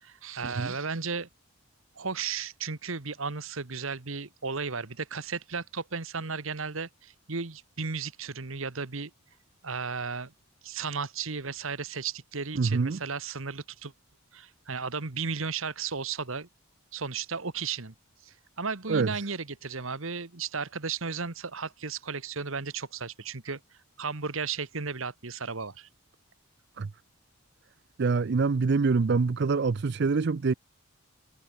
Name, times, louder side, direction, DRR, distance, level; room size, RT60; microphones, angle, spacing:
voice 1, 0.0-1.3 1.9-9.1 9.6-10.3 10.6-13.9 14.3-16.5 16.9-17.9 18.2-23.6 24.0-25.9, right 5 dB, 65° right, 1.5 m, -34 dB
voice 2, 12.5-13.0 18.9-19.1 26.8-26.9 28.0-30.5, right 4 dB, 50° right, 0.5 m, -25 dB
head